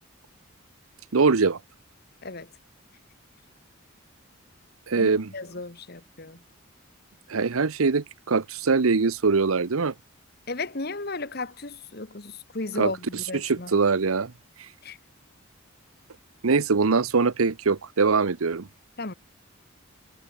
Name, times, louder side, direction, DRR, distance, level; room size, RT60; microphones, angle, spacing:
voice 1, 1.1-1.6 4.9-5.3 7.3-9.9 12.8-12.9 13.3-14.3 16.4-18.7, right 4 dB, 80° right, 0.8 m, -22 dB
voice 2, 4.9-6.4 10.5-13.8 14.8-15.0 19.0-19.1, left 3 dB, 50° left, 1.6 m, -35 dB
head